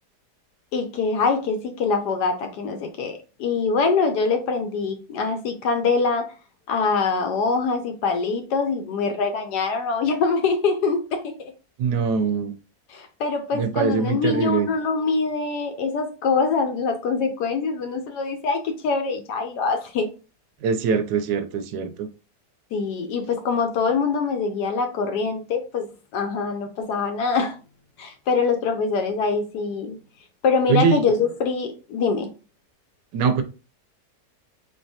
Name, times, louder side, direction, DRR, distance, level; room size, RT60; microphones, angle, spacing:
voice 1, 0.7-6.3 6.7-11.5 12.9-20.1 22.7-27.6 28.0-30.0 30.4-32.3, left 4 dB, 75° left, 1.1 m, -24 dB
voice 2, 11.8-12.5 13.5-14.7 20.6-22.1 30.7-31.0 33.1-33.4, right 6 dB, 80° right, 1.2 m, -22 dB
3.6 x 3.3 x 2.7 m
omnidirectional pair, 1.9 m